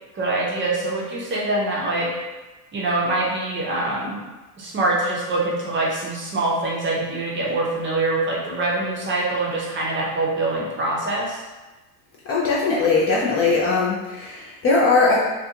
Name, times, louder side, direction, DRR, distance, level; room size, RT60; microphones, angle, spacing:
voice 1, 0.1-2.1 2.7-4.2 4.6-11.4, right 2 dB, 25° right, -4 dB, 0.6 m, -24 dB
voice 2, 12.2-15.2, left 3 dB, 30° left, -6 dB, 0.4 m, -20 dB
2.4 x 2.3 x 2.7 m, 1.2 s
supercardioid pair, 100°, 47 cm